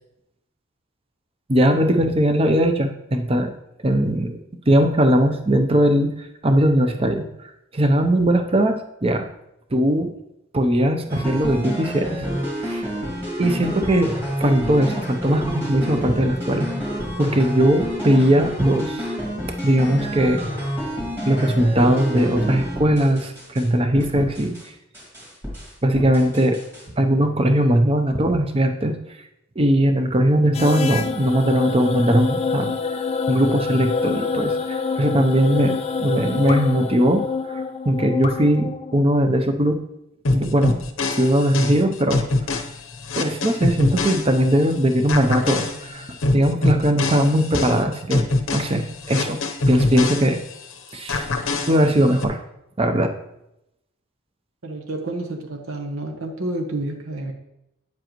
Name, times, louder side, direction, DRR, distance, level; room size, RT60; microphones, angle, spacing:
voice 1, 1.5-3.5 3.8-4.4 4.7-9.2 9.7-10.1 10.5-12.2 12.6-12.9 13.4-14.1 14.4-16.7 17.2-19.1 19.6-20.4 21.3-24.5 25.8-26.6 27.0-29.0 29.6-32.7 33.3-37.2 37.5-39.8 40.3-40.8 41.2-42.3 43.1-46.1 46.3-48.3 48.5-49.4 49.7-50.4 50.9-51.3 51.6-52.4 52.8-53.1, right 1 dB, 25° right, 6 dB, 0.6 m, -19 dB
sound 1, 11.1-23.7 24.0-24.7 24.9-26.8, equal, 10° right, 2.0 m, -29 dB
sound 2, 30.5-39.0, left 4 dB, 30° left, 0.3 m, -26 dB
sound 3, 40.2-44.7 45.1-50.7 51.1-52.2, left 2 dB, 70° left, 0.8 m, -24 dB
voice 2, 54.6-57.3, right 2 dB, 70° right, 2 dB, 1.0 m, -29 dB
9.0 x 7.5 x 3.0 m, 0.83 s
head